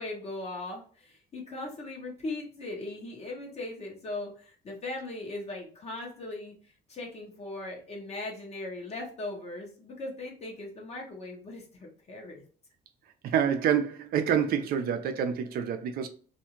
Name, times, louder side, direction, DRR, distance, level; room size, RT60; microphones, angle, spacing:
voice 1, 0.0-12.4, left 2 dB, 40° left, 0.9 m, -39 dB
voice 2, 13.2-16.1, right 8 dB, 65° right, 0.5 m, -27 dB
2.6 x 2.3 x 2.9 m
cardioid pair, 110°, 17 cm